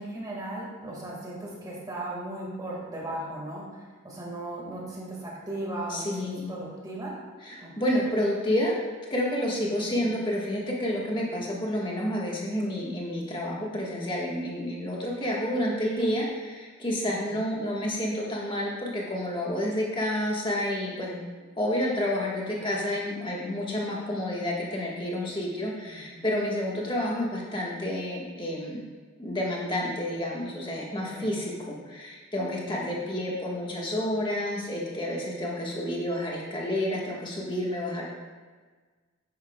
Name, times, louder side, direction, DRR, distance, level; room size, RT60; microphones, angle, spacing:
voice 1, 0.0-7.2 7.6-8.0 9.9-10.2 11.8-11.9 17.0-17.4 22.5-22.7 25.9-26.2 31.0-31.4 32.6-33.0, right 1 dB, 20° right, -4 dB, 1.9 m, -37 dB
voice 2, 5.9-6.6 7.4-8.7 9.1-21.2 21.6-28.8 29.2-38.0, left 1 dB, 20° left, -3 dB, 1.5 m, -29 dB
10.0 x 8.6 x 2.3 m, 1.4 s
head